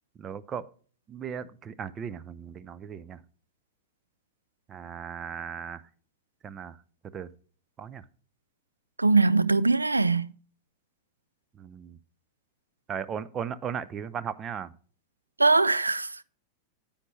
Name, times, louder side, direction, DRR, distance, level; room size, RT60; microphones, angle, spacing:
voice 1, 0.2-0.7 1.1-3.2 4.7-5.8 6.4-6.8 7.1-7.3 7.8-8.0 11.5-12.0 12.9-14.7, right 7 dB, 25° right, 0.6 m, -36 dB
voice 2, 9.0-10.3 15.4-16.2, right 3 dB, 80° right, 0.3 m, -22 dB
9.7 x 8.7 x 3.1 m
figure-of-eight pair, 90°, 0 cm